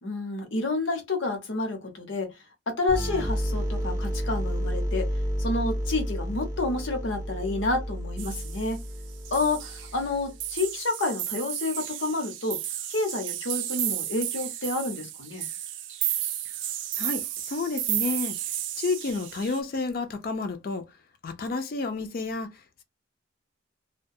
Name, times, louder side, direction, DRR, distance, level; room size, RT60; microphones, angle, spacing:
voice 1, 0.0-2.3 2.7-5.1 5.4-8.8 9.3-12.6 12.9-15.5, left 3 dB, 85° left, 0.9 m, -29 dB
sound 1, 2.9-10.5, equal, 15° right, 0.5 m, -31 dB
sound 2, 8.2-8.9 9.2-10.1 10.4-19.6, right 12 dB, 75° right, 0.4 m, -33 dB
voice 2, 17.0-18.4 18.8-20.9 21.2-22.8, left 3 dB, 50° left, 0.4 m, -30 dB
2.2 x 2.2 x 2.6 m
head